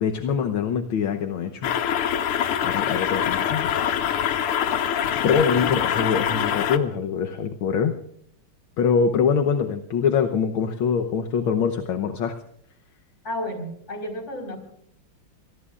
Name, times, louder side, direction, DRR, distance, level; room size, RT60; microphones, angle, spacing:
voice 1, 0.0-1.7 2.6-3.7 5.2-8.0 8.8-12.3, left 6 dB, 70° left, 6 dB, 1.7 m, -24 dB
sound 1, 1.6-6.8, left 9 dB, 85° left, 1.9 m, -24 dB
voice 2, 13.2-14.6, left 1 dB, 30° left, 4 dB, 4.9 m, -32 dB
27.5 x 19.5 x 2.5 m, 0.66 s
omnidirectional pair, 2.4 m